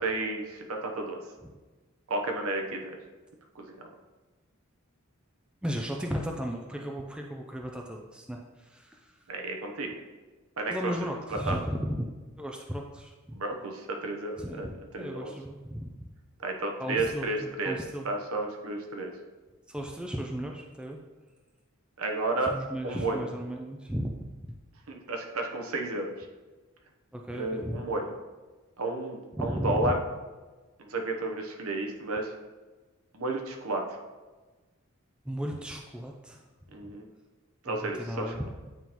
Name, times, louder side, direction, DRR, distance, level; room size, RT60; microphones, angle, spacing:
voice 1, 0.0-1.2 2.1-3.0 3.5-3.9 9.3-9.9 10.6-10.7 11.3-11.6 13.3-14.7 14.9-15.3 16.4-17.8 18.0-19.1 22.0-22.5 22.8-23.2 24.9-26.3 27.3-28.0 28.8-29.9 30.8-32.3 33.1-33.8 36.7-37.1 37.6-38.3, right 2 dB, 80° right, 2 dB, 0.8 m, -32 dB
voice 2, 5.6-9.1 10.7-12.0 12.4-13.4 14.4-15.9 16.8-18.0 19.7-21.0 22.5-24.6 27.1-27.8 29.4-29.9 35.3-36.4 36.8-36.9 37.7-38.5, equal, 5° right, 1 dB, 0.3 m, -35 dB
9.0 x 3.7 x 2.9 m, 1.3 s
head